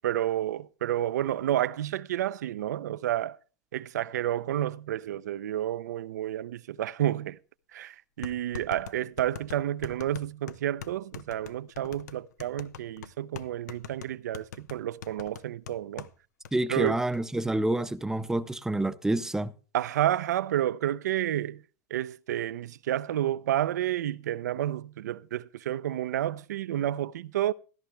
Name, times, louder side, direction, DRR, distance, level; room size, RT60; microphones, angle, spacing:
voice 1, 0.0-3.4 3.7-7.4 7.7-16.1 16.7-17.0 19.7-21.6 21.9-27.5, right 12 dB, 80° right, 0.6 m, -30 dB
sound 1, 7.3-7.4 8.2-16.1 16.4-16.5 16.9-17.2, left 7 dB, 80° left, 0.8 m, -43 dB
voice 2, 16.5-19.5, right 1 dB, 5° right, 0.7 m, -28 dB
14.0 x 13.0 x 3.3 m
hypercardioid pair, 110°, 9 cm